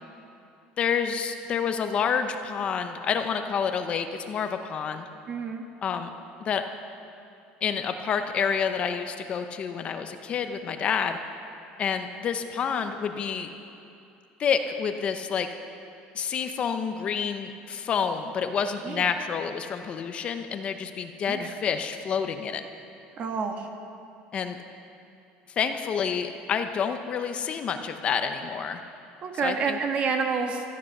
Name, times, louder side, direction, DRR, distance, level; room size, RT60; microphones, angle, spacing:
voice 1, 0.8-5.1 5.8-6.1 6.4-6.6 7.6-11.2 11.8-13.5 14.4-15.5 16.1-22.6 24.3-24.6 25.6-28.8 29.4-29.8, left 7 dB, 35° left, 7 dB, 0.7 m, -28 dB
voice 2, 5.3-5.6 18.9-19.0 21.3-21.5 23.2-23.7 29.2-30.6, right 5 dB, 35° right, 4 dB, 1.5 m, -28 dB
15.5 x 13.0 x 6.6 m, 2.7 s
cardioid pair, 160°, 4 cm